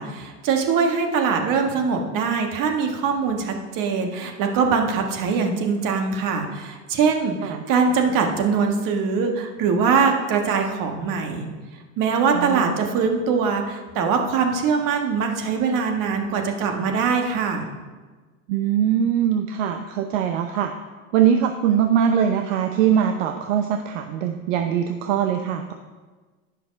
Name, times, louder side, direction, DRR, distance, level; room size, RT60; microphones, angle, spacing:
voice 1, 0.0-11.5 12.0-17.7, right 5 dB, 55° right, 3 dB, 1.6 m, -22 dB
voice 2, 12.3-12.8 18.5-20.7 21.1-25.7, right 9 dB, 75° right, 6 dB, 0.8 m, -22 dB
10.0 x 5.8 x 5.2 m, 1.3 s
hypercardioid pair, 85°, 39 cm